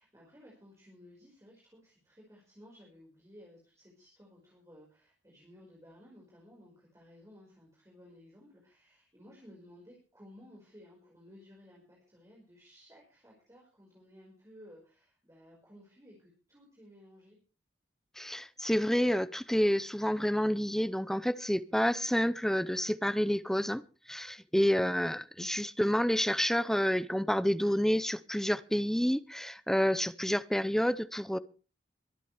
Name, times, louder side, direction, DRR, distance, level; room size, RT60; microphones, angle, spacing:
voice 1, 0.0-17.4 24.6-25.1, equal, 15° right, 5.1 m, -56 dB
voice 2, 18.2-23.8 24.1-31.4, equal, ahead, 0.6 m, -29 dB
24.0 x 10.5 x 3.4 m
head